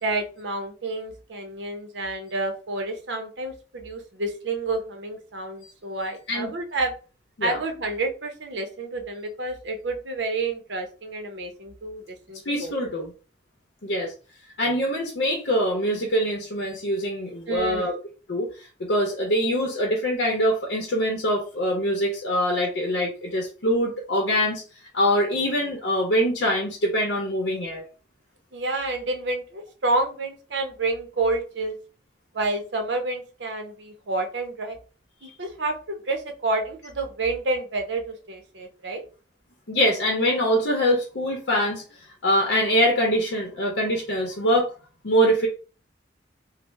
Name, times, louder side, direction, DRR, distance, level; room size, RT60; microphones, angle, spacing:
voice 1, 0.0-6.9 7.4-12.8 17.5-17.9 28.5-31.8 32.3-34.8 35.2-39.0, right 2 dB, 75° right, 5 dB, 0.7 m, -29 dB
voice 2, 12.5-13.1 13.8-14.1 14.6-17.9 18.3-18.5 18.9-24.6 24.9-27.8 39.7-41.8 42.2-44.7 45.0-45.5, equal, 75° left, 0 dB, 0.7 m, -23 dB
3.2 x 2.1 x 3.1 m, 0.36 s
head